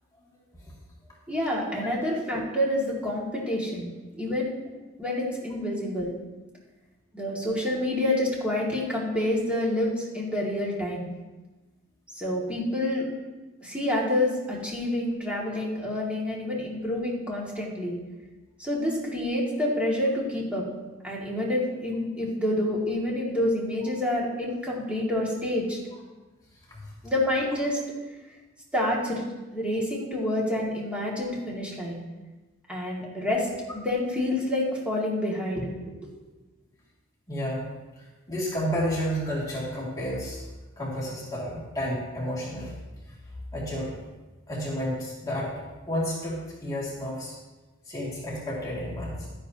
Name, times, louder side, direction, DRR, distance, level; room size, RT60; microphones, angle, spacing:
voice 1, 1.3-3.9 4.1-4.5 5.0-6.1 7.1-11.1 12.1-13.1 13.6-18.0 18.6-20.6 21.0-25.8 27.0-27.8 28.7-29.3 29.5-32.0 32.7-35.9, left 1 dB, 5° right, -4 dB, 2.1 m, -28 dB
voice 2, 37.3-37.7 38.3-40.4 40.8-42.7 43.5-44.0 44.5-47.4 47.9-49.3, equal, 15° left, -6 dB, 2.3 m, -31 dB
12.0 x 10.0 x 2.8 m, 1.2 s
head